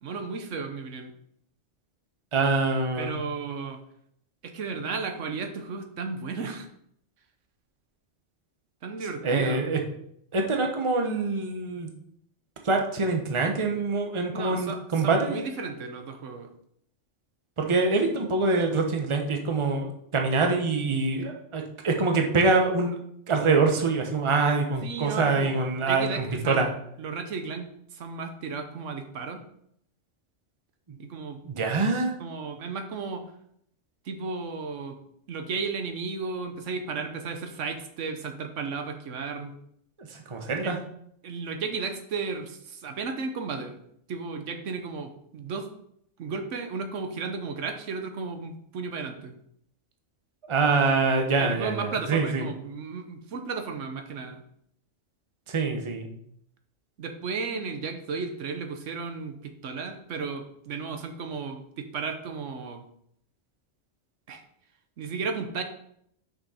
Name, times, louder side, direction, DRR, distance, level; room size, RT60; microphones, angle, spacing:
voice 1, 0.0-1.1 3.0-3.8 4.4-6.7 8.8-9.6 14.3-16.5 21.2-21.3 24.8-26.7 27.0-29.4 31.0-31.4 32.2-33.3 34.0-35.0 35.3-39.5 40.6-40.8 41.2-43.8 44.1-45.7 46.2-49.3 51.4-54.4 57.0-62.8 64.3-64.4 65.0-65.6, right 4 dB, 75° right, 6 dB, 1.2 m, -34 dB
voice 2, 2.3-3.1 9.2-9.8 10.3-11.9 12.6-15.4 17.6-23.0 23.3-26.7 30.9-31.0 31.4-32.1 40.3-40.8 50.5-52.4 55.5-56.1, right 3 dB, 25° right, 3 dB, 0.9 m, -25 dB
6.2 x 5.5 x 4.2 m, 0.70 s
omnidirectional pair, 1.3 m